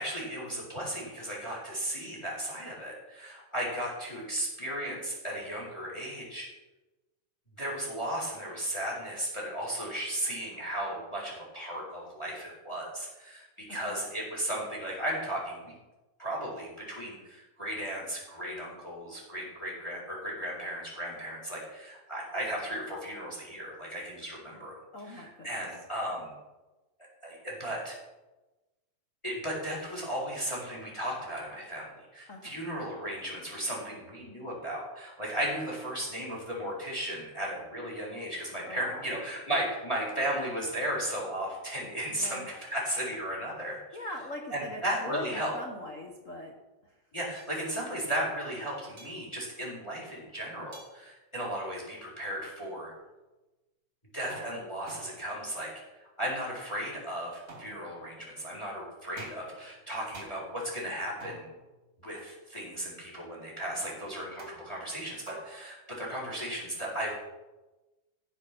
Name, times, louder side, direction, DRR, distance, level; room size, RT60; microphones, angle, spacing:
voice 1, 0.0-6.5 7.6-15.8 16.2-24.8 25.1-26.3 27.2-28.0 29.2-43.8 44.5-45.5 47.1-52.9 54.1-61.5 62.0-67.2, right 1 dB, 10° left, -3 dB, 3.9 m, -35 dB
voice 2, 13.7-14.0 24.9-25.6 32.3-32.6 38.6-39.2 42.1-42.5 43.7-46.5 46.8-47.0 63.7-64.1, left 1 dB, 55° left, 1 dB, 0.8 m, -42 dB
sound 1, 47.3-47.5 49.0-49.1 50.7-50.9 54.3-55.5 57.5-58.1 59.2-59.7 60.1-60.6 61.2-61.9 64.4-64.9 65.3-65.7, right 2 dB, 25° right, 2.7 m, -48 dB
15.0 x 7.6 x 6.0 m, 1.1 s
omnidirectional pair, 3.7 m